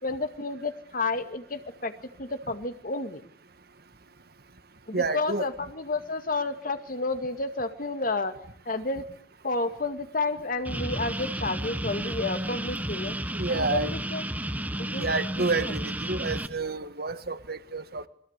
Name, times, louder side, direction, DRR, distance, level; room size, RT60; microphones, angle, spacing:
voice 1, 0.0-1.9 2.2-3.2 4.9-8.4 8.7-9.0 9.4-13.2 13.5-14.2 14.8-15.1 15.4-15.5, left 3 dB, 50° left, 8 dB, 2.1 m, -31 dB
voice 2, 4.9-5.5 13.3-13.9 15.0-18.1, right 3 dB, 60° right, 11 dB, 1.7 m, -29 dB
sound 1, 10.6-16.5, right 1 dB, 10° right, 1.3 m, -32 dB
28.5 x 22.5 x 8.3 m, 0.66 s
head